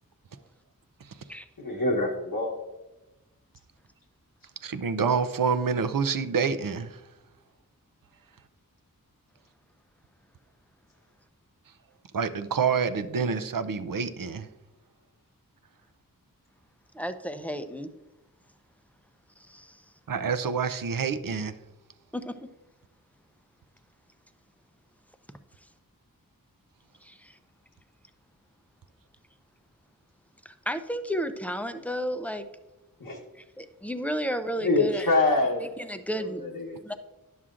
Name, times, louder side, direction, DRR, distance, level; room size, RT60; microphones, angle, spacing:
voice 1, 1.6-2.6 33.0-33.2 34.6-35.7 36.2-36.9, left 2 dB, 90° left, 1.2 m, -26 dB
voice 2, 4.6-7.0 12.1-14.5 20.1-21.5, right 6 dB, 70° right, 0.6 m, -27 dB
voice 3, 16.9-17.9 19.5-19.8 22.1-22.3 27.0-27.4 30.4-32.4 33.6-35.1 35.8-36.4 36.8-36.9, equal, 5° left, 0.5 m, -32 dB
11.0 x 7.2 x 2.5 m
wide cardioid pair, 70°, 35 cm